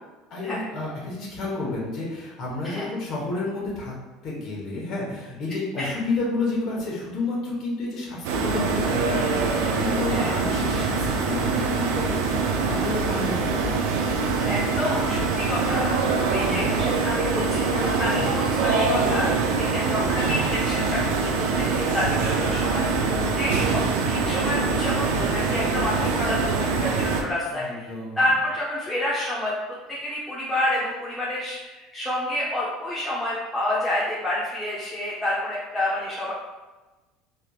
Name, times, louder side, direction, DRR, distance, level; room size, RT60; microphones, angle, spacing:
voice 1, 0.3-3.9 4.2-14.0 16.4-16.7 18.1-18.4 27.5-28.3, left 3 dB, 55° left, -3 dB, 1.2 m, -31 dB
sound 1, 8.2-27.2, right 4 dB, 80° right, 0.4 m, -24 dB
voice 2, 14.4-16.0 16.3-23.8 24.1-29.5 29.9-36.3, left 1 dB, 15° left, -7 dB, 0.7 m, -29 dB
3.4 x 2.7 x 2.4 m, 1.2 s
supercardioid pair, 100°, 0 cm